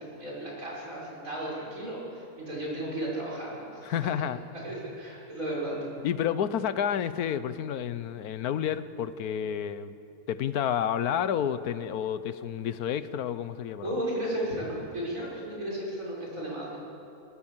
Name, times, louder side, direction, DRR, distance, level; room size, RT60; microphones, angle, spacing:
voice 1, 0.0-3.9 4.5-5.8 13.8-16.8, right 1 dB, 60° right, -5 dB, 6.8 m, -34 dB
voice 2, 3.8-4.4 6.0-9.9 10.3-14.0, left 9 dB, 85° left, 13 dB, 1.3 m, -30 dB
23.5 x 17.5 x 7.4 m, 2.7 s
omnidirectional pair, 1.6 m